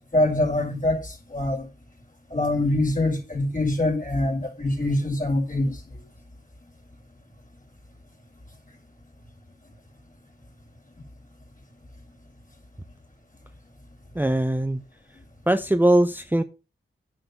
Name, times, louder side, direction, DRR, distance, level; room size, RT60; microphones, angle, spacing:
voice 1, 0.0-1.6 2.3-5.8, left 1 dB, 40° left, 5.5 m, -24 dB
voice 2, 14.1-14.8 15.5-16.4, right 1 dB, 10° right, 0.8 m, -21 dB
9.5 x 6.6 x 6.9 m
cardioid pair, 50°, 21 cm